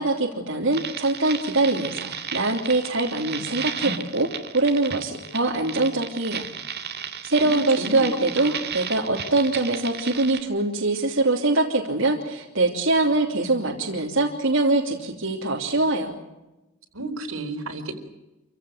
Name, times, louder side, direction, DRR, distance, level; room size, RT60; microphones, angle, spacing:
voice 1, 0.0-6.5 7.2-16.1, right 2 dB, 65° right, -2 dB, 3.2 m, -23 dB
sound 1, 0.7-10.4, right 7 dB, 50° right, 2.1 m, -33 dB
voice 2, 7.4-8.1 8.4-8.7 16.9-17.9, right 2 dB, 85° right, 4 dB, 4.3 m, -32 dB
28.0 x 16.0 x 9.0 m, 1.0 s
head